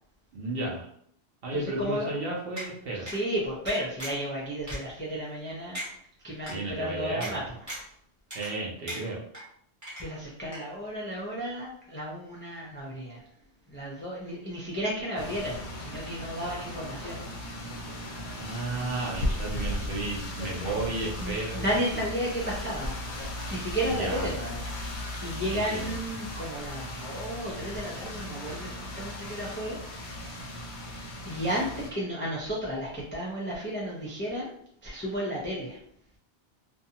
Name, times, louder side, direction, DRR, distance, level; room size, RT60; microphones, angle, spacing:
voice 1, 0.3-0.9 1.4-3.1 6.4-7.5 8.3-9.2 18.4-21.8 23.9-24.4 25.5-26.0, right 2 dB, 65° right, -2 dB, 0.9 m, -33 dB
voice 2, 1.5-2.2 2.9-5.8 6.2-7.7 10.0-13.2 13.7-17.2 17.9-18.2 21.2-23.0 23.5-24.7 25.2-30.3 31.3-34.5 34.8-35.8, equal, 15° left, -5 dB, 0.4 m, -33 dB
sound 1, 2.6-2.7 3.1-3.2 3.7-4.3 4.7-4.8 5.3-5.4 5.7-5.9 6.5-6.6 7.2-7.3 7.7-7.9 8.3-8.6 8.9-9.4 9.8-10.3 10.5-10.6, equal, 20° right, 0.8 m, -38 dB
sound 2, 15.2-31.9, left 1 dB, 55° left, 0.7 m, -37 dB
2.6 x 2.2 x 2.7 m, 0.64 s
omnidirectional pair, 1.1 m